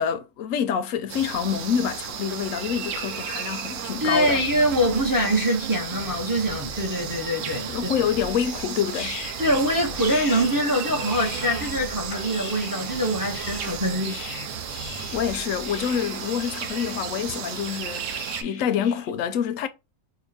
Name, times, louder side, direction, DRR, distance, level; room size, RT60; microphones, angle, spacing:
voice 1, 0.0-4.4 7.7-9.2 15.1-19.7, left 8 dB, 85° left, 1.0 m, -27 dB
sound 1, 1.1-18.4, right 8 dB, 75° right, 1.0 m, -34 dB
voice 2, 4.0-7.7 9.4-14.2, equal, 20° right, 0.6 m, -24 dB
sound 2, 4.0-16.7, right 1 dB, 40° right, 1.0 m, -43 dB
sound 3, 8.1-19.1, left 6 dB, 50° left, 0.7 m, -41 dB
4.8 x 2.2 x 3.3 m
omnidirectional pair, 1.3 m